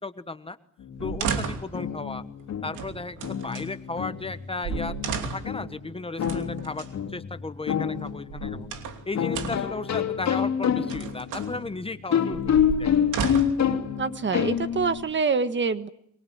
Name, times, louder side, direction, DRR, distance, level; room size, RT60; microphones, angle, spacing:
voice 1, 0.0-0.6 1.0-2.2 2.6-5.0 5.3-8.7 9.0-13.2, left 3 dB, 20° left, 11 dB, 1.3 m, -35 dB
sound 1, 0.8-15.0, left 8 dB, 65° left, 2.7 m, -28 dB
sound 2, 1.0-1.8 2.7-3.7 4.3-4.4 4.6-5.6 6.2-6.9 8.1-9.0 9.3-9.8 10.6-11.5 12.3-13.7 14.5-15.2, right 7 dB, 90° right, 2.9 m, -33 dB
voice 2, 14.0-15.9, right 5 dB, 40° right, 12 dB, 1.5 m, -26 dB
23.5 x 22.5 x 8.8 m, 0.69 s
cardioid pair, 90°, 30 cm